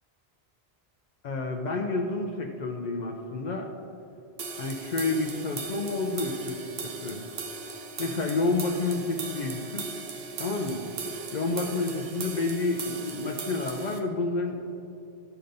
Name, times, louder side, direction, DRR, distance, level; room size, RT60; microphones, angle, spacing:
voice 1, 1.2-3.7 4.6-7.2 8.0-9.8 10.4-10.8 11.3-14.6, left 3 dB, 50° left, 1 dB, 0.6 m, -29 dB
sound 1, 4.4-14.0, right 4 dB, 65° right, 0.9 m, -38 dB
12.5 x 6.8 x 2.6 m, 2.8 s
omnidirectional pair, 1.1 m